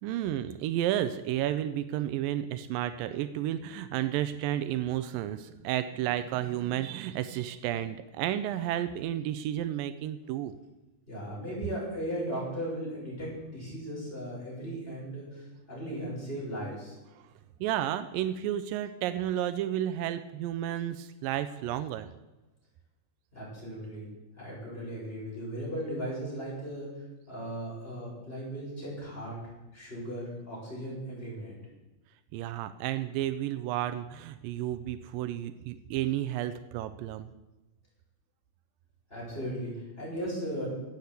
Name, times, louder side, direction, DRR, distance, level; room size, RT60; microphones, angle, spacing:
voice 1, 0.0-10.5 17.6-22.1 32.3-37.3, right 12 dB, 85° right, 11 dB, 2.3 m, -32 dB
voice 2, 11.1-17.0 23.3-24.0 24.4-26.9 27.3-29.4 29.7-31.5 39.1-40.7, equal, 15° left, -5 dB, 6.4 m, -37 dB
12.5 x 8.5 x 8.1 m, 1.1 s
omnidirectional pair, 3.9 m